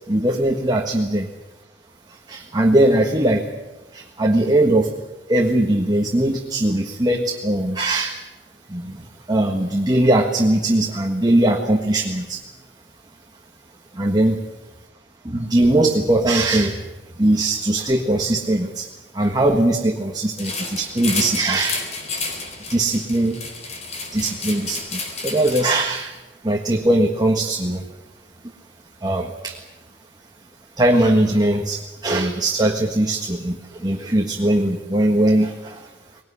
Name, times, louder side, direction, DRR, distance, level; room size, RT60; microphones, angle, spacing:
voice 1, 0.1-1.3 2.1-3.5 3.9-5.0 5.3-8.2 8.7-12.4 13.9-14.4 15.2-21.9 22.6-23.4 24.1-27.9 28.4-28.5 29.0-29.7 30.8-36.2, right 1 dB, 25° right, 1 dB, 1.6 m, -20 dB
sound 1, 20.4-26.0, left 3 dB, 40° left, 4.1 m, -31 dB
21.0 x 19.0 x 9.9 m, 1.1 s
head